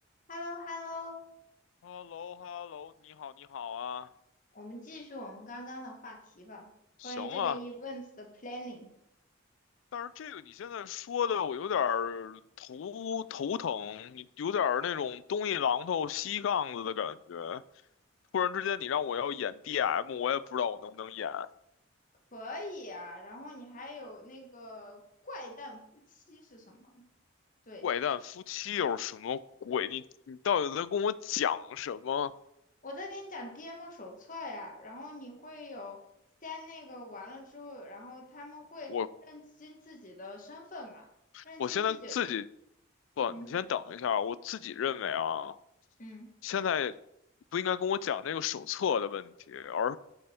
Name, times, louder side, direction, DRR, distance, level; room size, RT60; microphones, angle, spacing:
voice 1, 0.3-1.2 4.5-6.7 7.0-8.9 22.3-27.0 27.6-27.9 32.8-36.0 36.4-39.0 39.3-41.0 41.4-42.2 43.3-43.5 46.0-46.3, left 1 dB, 40° left, 1.3 m, -43 dB
voice 2, 1.8-4.1 7.0-7.6 9.9-17.6 18.3-21.5 27.8-32.3 38.9-39.1 41.3-42.4 43.2-45.6 46.4-46.9 47.5-50.0, left 8 dB, 75° left, 0.3 m, -32 dB
6.8 x 5.4 x 4.4 m
head